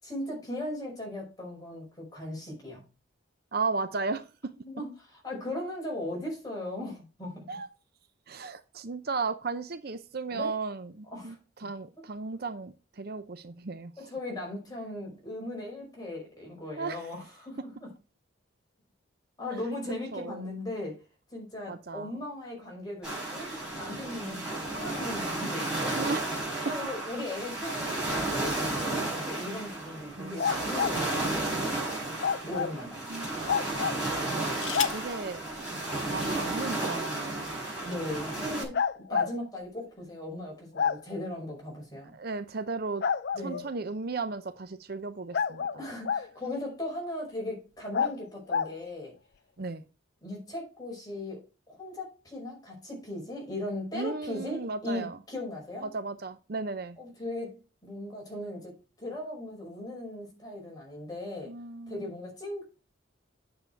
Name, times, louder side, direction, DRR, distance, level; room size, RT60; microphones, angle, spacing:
voice 1, 0.0-2.8 4.6-7.4 10.3-10.5 11.1-11.4 14.1-17.9 19.4-21.0 21.3-23.5 23.8-26.0 26.7-33.0 35.7-35.8 37.8-42.1 43.3-43.6 45.8-49.1 50.2-51.4 51.7-55.9 57.0-58.7 59.0-61.5 61.9-62.6, left 1 dB, 20° left, -1 dB, 5.3 m, -38 dB
voice 2, 3.5-4.3 7.5-7.7 8.3-14.1 16.8-17.1 19.5-19.6 20.1-20.5 21.7-22.1 24.2-24.5 26.0-26.5 30.2-30.4 33.1-33.3 34.9-35.4 36.1-37.5 39.1-39.2 42.1-43.0 43.4-45.8 49.6-49.8 53.9-55.2 55.8-57.0 61.4-62.1, right 4 dB, 50° right, 11 dB, 0.6 m, -35 dB
sound 1, 23.0-38.6, right 2 dB, 5° right, 5.6 m, -33 dB
sound 2, 30.4-31.6 32.3-32.5 34.1-35.2 36.3-36.4 36.7-37.1, left 10 dB, 75° left, 0.9 m, -38 dB
sound 3, 30.4-31.0 32.2-32.7 33.5-34.0 34.7-34.9 36.7-36.8 38.7-39.3 40.7-41.0 43.0-43.7 45.3-46.3 47.9-48.1 48.5-48.7, left 6 dB, 50° left, 0.4 m, -28 dB
9.1 x 6.9 x 4.5 m, 0.32 s
head